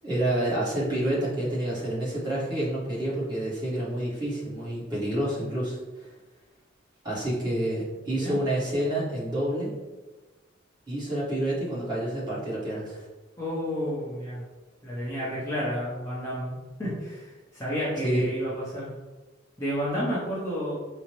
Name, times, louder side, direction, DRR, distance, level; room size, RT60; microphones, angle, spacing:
voice 1, 0.0-6.1 7.0-9.7 10.9-13.1 18.0-18.3, right 1 dB, 20° right, -8 dB, 1.3 m, -28 dB
voice 2, 13.4-14.4 14.8-18.9 19.6-20.8, equal, 15° left, -8 dB, 0.7 m, -31 dB
5.0 x 2.1 x 3.0 m, 1.2 s
head